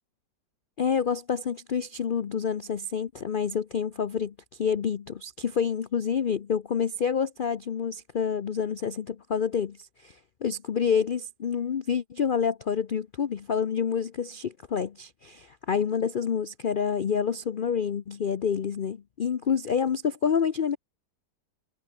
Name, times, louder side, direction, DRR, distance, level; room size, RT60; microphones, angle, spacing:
voice 1, 0.8-20.8, left 7 dB, 70° left, 0.5 m, -28 dB
omnidirectional pair, 1.9 m